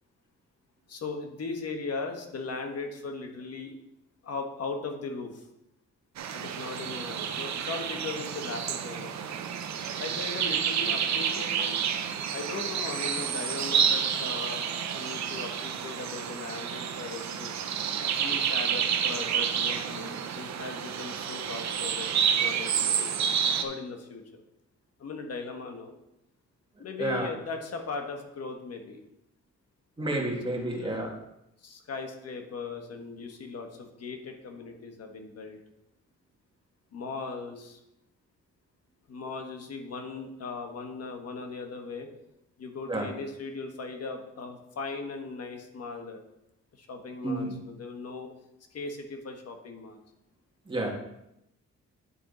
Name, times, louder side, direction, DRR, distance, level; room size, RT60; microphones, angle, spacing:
voice 1, 0.9-3.7 4.2-5.5 6.3-9.4 10.0-11.7 12.3-14.7 14.9-17.5 18.2-23.1 23.5-24.4 25.0-25.9 26.8-29.0 30.7-31.1 31.6-35.6 36.9-37.8 39.1-42.1 42.6-46.2 46.8-48.3 48.7-50.0, left 4 dB, 55° left, 4 dB, 1.4 m, -38 dB
sound 1, 6.2-23.6, right 8 dB, 70° right, 0.8 m, -29 dB
voice 2, 30.0-31.1 42.9-43.1 47.2-47.6 50.7-50.9, right 2 dB, 15° right, -1 dB, 1.9 m, -30 dB
10.0 x 4.5 x 4.0 m, 0.83 s
cardioid pair, 95°, 29 cm